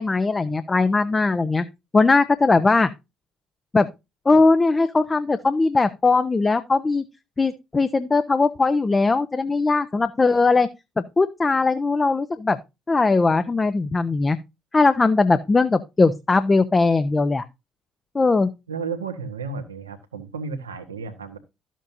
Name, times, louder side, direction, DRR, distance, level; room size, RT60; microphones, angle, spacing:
voice 1, 0.0-1.6 1.9-2.9 3.7-3.9 4.2-7.0 7.4-10.7 11.0-12.6 12.9-14.4 14.7-17.4 18.1-18.5, left 3 dB, 25° left, 0.9 m, -19 dB
voice 2, 18.7-21.4, right 5 dB, 85° right, 1.4 m, -33 dB
13.0 x 7.5 x 2.7 m
figure-of-eight pair, 50°, 0 cm